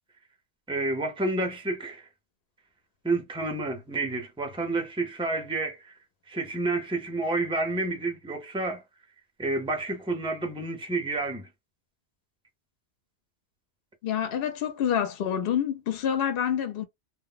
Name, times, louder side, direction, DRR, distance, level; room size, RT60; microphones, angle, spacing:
voice 1, 0.7-2.1 3.0-5.9 6.3-8.8 9.4-11.5, right 2 dB, 5° right, 0.4 m, -29 dB
voice 2, 14.0-16.8, left 9 dB, 60° left, 0.7 m, -27 dB
2.1 x 2.0 x 3.7 m
omnidirectional pair, 1.2 m